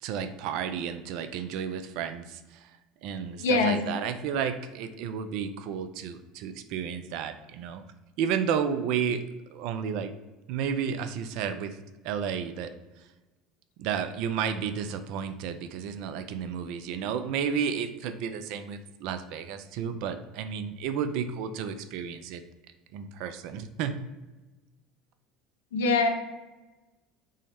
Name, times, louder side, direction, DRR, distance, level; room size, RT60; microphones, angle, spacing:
voice 1, 0.0-2.7 3.0-7.8 8.2-9.2 9.5-10.1 10.5-11.8 12.0-12.7 13.8-22.4 22.9-23.9, right 7 dB, 65° right, 9 dB, 0.3 m, -32 dB
voice 2, 3.4-3.8 25.7-26.1, left 3 dB, 80° left, 4 dB, 0.6 m, -23 dB
5.3 x 2.1 x 3.3 m, 1.1 s
hypercardioid pair, 75°, 0 cm